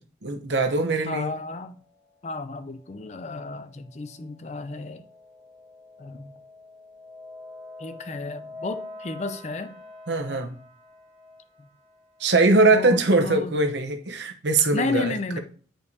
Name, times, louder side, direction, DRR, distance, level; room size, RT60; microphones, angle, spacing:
voice 1, 0.2-1.3 10.1-10.5 12.2-15.4, right 3 dB, 75° right, 0.9 m, -22 dB
voice 2, 1.1-1.8 2.2-5.1 6.0-6.3 7.8-9.8 12.7-13.6 14.7-15.4, left 3 dB, 40° left, 0.5 m, -32 dB
sound 1, 1.7-12.6, left 2 dB, 20° right, 1.7 m, -46 dB
8.7 x 5.4 x 2.7 m
head